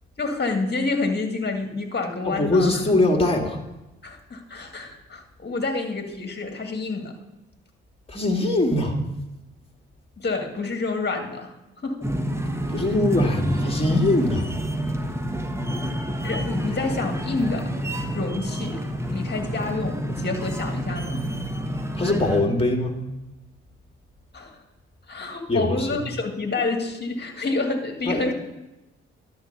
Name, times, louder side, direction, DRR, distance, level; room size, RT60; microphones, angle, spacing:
voice 1, 0.2-2.8 4.0-7.1 10.2-11.6 11.8-12.1 16.2-17.7 18.1-18.8 19.1-21.3 24.3-24.6 25.1-28.3, left 3 dB, 35° left, 4 dB, 2.0 m, -28 dB
voice 2, 2.3-3.6 8.1-9.0 12.7-14.5 22.0-23.0 25.5-25.9 28.1-28.3, left 2 dB, 20° left, 2 dB, 2.1 m, -22 dB
sound 1, 12.0-22.4, equal, 10° right, 1.3 m, -28 dB
11.0 x 4.6 x 6.6 m, 0.98 s
hypercardioid pair, 45°, 30 cm